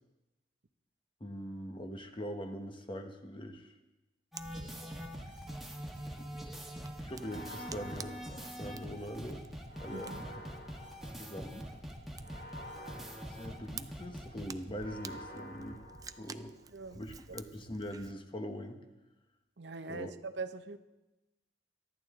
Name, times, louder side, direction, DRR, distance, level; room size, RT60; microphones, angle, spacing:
voice 1, 1.2-3.7 6.2-6.3 7.0-9.4 9.8-10.8 11.2-11.7 13.3-15.8 16.2-16.6 16.9-18.8 19.9-20.1, equal, 30° left, 6 dB, 1.2 m, -42 dB
sound 1, 4.3-14.5, equal, ahead, 1.8 m, -44 dB
Fire, 4.4-18.1, right 5 dB, 20° right, 0.4 m, -52 dB
sound 2, 7.2-9.0 9.7-11.5 12.2-14.1 14.7-16.6, left 1 dB, 65° left, 3.1 m, -50 dB
voice 2, 9.9-10.2 16.7-17.0 19.6-20.8, right 4 dB, 70° right, 9 dB, 0.8 m, -42 dB
23.0 x 11.5 x 3.8 m, 1.0 s
head